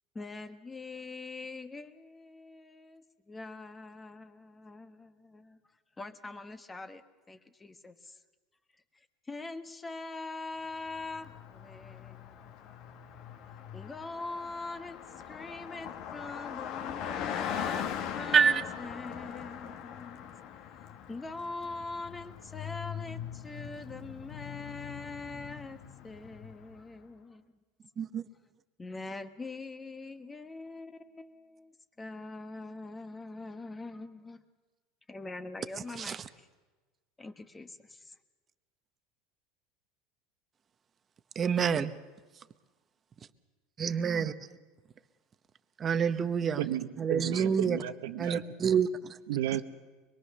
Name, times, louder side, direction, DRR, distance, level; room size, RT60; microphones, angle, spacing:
voice 1, 0.1-5.6 6.0-7.0 7.3-8.1 9.3-12.7 13.7-20.3 21.1-27.4 28.8-34.4 35.1-36.5 37.2-38.1, left 3 dB, 15° left, 1.2 m, -43 dB
Car passing by, 10.8-26.8, left 9 dB, 55° left, 1.6 m, -41 dB
voice 2, 41.4-41.9 43.8-44.3 45.8-46.7 47.0-47.8 48.2-49.2, right 7 dB, 30° right, 1.0 m, -27 dB
voice 3, 46.6-48.4 49.3-49.6, right 12 dB, 85° right, 1.2 m, -33 dB
24.0 x 22.0 x 6.7 m
supercardioid pair, 125°, 0 cm